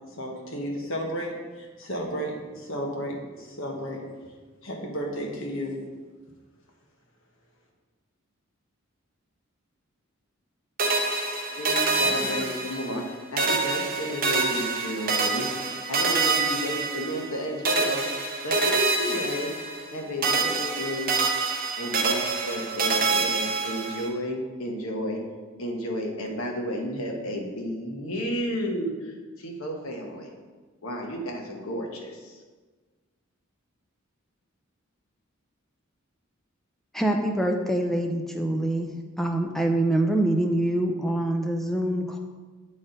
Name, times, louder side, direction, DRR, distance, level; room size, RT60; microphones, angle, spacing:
voice 1, 0.1-4.0 4.6-5.8, equal, 65° left, -1 dB, 1.3 m, -33 dB
sound 1, 10.8-13.1 13.4-17.4 17.6-20.0 20.2-24.1, right 3 dB, 45° right, 0.9 m, -26 dB
voice 2, 11.5-15.5 15.9-19.5 19.9-21.1 21.8-25.2 25.6-30.4 30.8-32.4, equal, 85° left, 1 dB, 1.1 m, -32 dB
voice 3, 36.9-38.9 39.2-42.2, right 1 dB, ahead, 2 dB, 0.5 m, -25 dB
8.4 x 4.2 x 3.9 m, 1.3 s
head